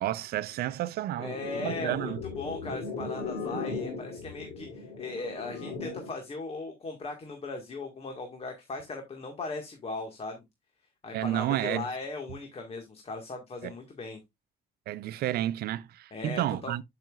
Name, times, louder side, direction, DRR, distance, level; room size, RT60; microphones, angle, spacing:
voice 1, 0.0-2.2 11.1-11.9 13.6-13.7 14.9-16.8, right 13 dB, 65° right, 0.6 m, -31 dB
sound 1, 1.2-6.2, left 3 dB, 55° left, 3.0 m, -37 dB
voice 2, 1.2-2.1 2.4-10.4 11.0-14.2 16.1-16.7, left 3 dB, 35° left, 1.8 m, -38 dB
10.5 x 5.8 x 2.4 m
cardioid pair, 110°, 17 cm